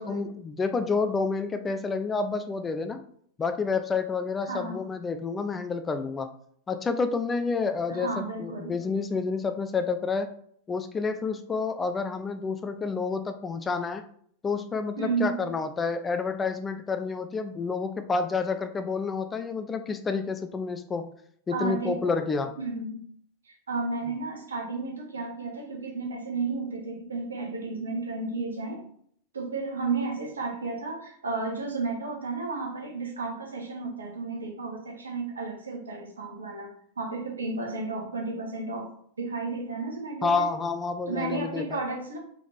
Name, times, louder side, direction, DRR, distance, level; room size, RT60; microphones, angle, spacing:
voice 1, 0.0-3.0 3.4-6.3 6.7-10.3 10.7-14.0 14.4-21.1 21.5-22.5 40.2-41.8, left 4 dB, 20° left, 8 dB, 0.4 m, -29 dB
voice 2, 4.5-4.8 7.9-8.7 15.0-15.4 21.5-22.2 22.6-23.0 23.4-28.8 29.3-38.9 39.2-40.5 41.1-42.2, right 3 dB, 70° right, 1 dB, 1.0 m, -33 dB
3.6 x 3.4 x 3.2 m, 0.63 s
figure-of-eight pair, 90°, 0 cm